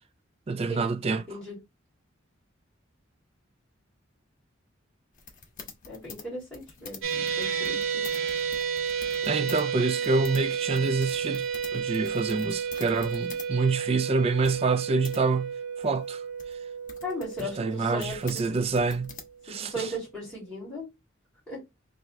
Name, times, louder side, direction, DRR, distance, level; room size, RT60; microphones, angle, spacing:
voice 1, 0.5-1.3 9.2-16.2 17.4-19.2 19.5-19.9, right 4 dB, 30° right, 0.3 m, -27 dB
sound 1, 5.1-9.6 9.9-13.5 13.8-13.9 14.4-15.2 15.8-19.7, left 5 dB, 45° left, 1.1 m, -46 dB
voice 2, 5.9-8.1 17.0-18.4 19.5-20.9 21.5-21.6, equal, 5° left, 2.8 m, -37 dB
sound 2, 7.0-19.4, right 7 dB, 80° right, 1.0 m, -32 dB
4.5 x 2.7 x 3.1 m
head